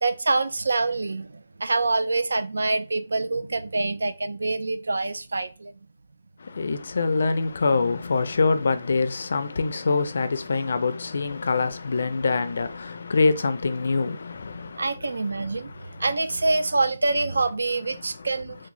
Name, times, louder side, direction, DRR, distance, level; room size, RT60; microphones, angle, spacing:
voice 1, 0.0-5.7 14.8-15.7 16.0-18.6, right 3 dB, 85° right, 0.4 m, -25 dB
voice 2, 6.4-16.0 18.0-18.3, left 4 dB, 50° left, 0.4 m, -25 dB
3.5 x 2.2 x 3.0 m
hypercardioid pair, 175°, 0 cm